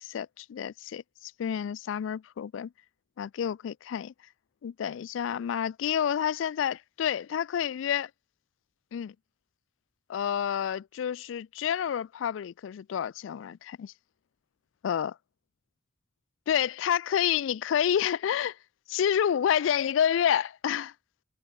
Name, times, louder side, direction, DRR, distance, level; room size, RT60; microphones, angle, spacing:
voice 1, 0.0-2.7 3.2-4.1 4.6-8.1 8.9-9.1 10.1-13.9 14.8-15.2 16.5-18.6 18.9-20.9, left 9 dB, 75° left, 0.3 m, -29 dB
head